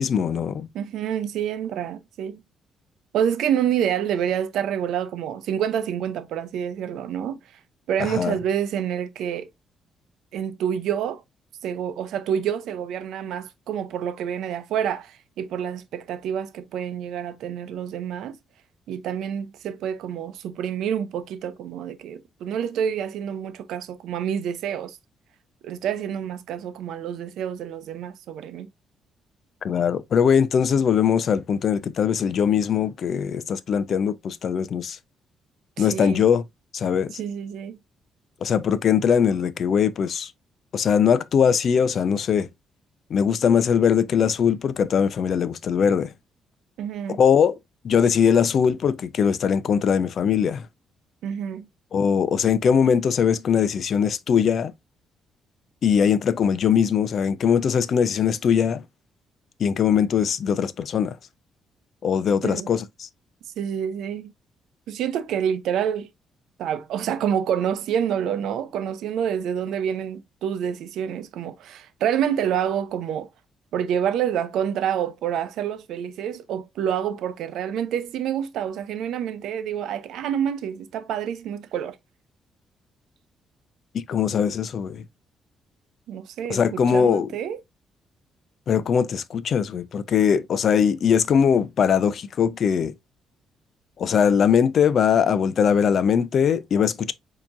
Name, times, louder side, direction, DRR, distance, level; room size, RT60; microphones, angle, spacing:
voice 1, 0.0-0.7 8.0-8.4 29.6-35.0 35.8-36.4 36.7-37.2 38.4-40.3 40.7-42.5 43.1-46.1 47.2-47.6 47.8-50.7 51.9-54.7 55.8-58.8 59.6-61.2 62.0-63.1 83.9-85.0 86.5-87.3 88.7-92.9 94.0-97.1, left 7 dB, 60° left, 0.5 m, -21 dB
voice 2, 0.7-2.4 3.1-7.4 7.9-9.5 10.3-11.2 11.6-18.4 18.9-25.0 25.6-28.7 35.8-36.2 37.2-37.8 46.8-47.2 51.2-51.7 62.4-62.7 63.6-64.3 64.9-66.1 66.6-73.3 73.7-82.0 86.1-87.6, right 9 dB, 80° right, 0.6 m, -27 dB
7.0 x 2.9 x 2.5 m
cardioid pair, 90°, 0 cm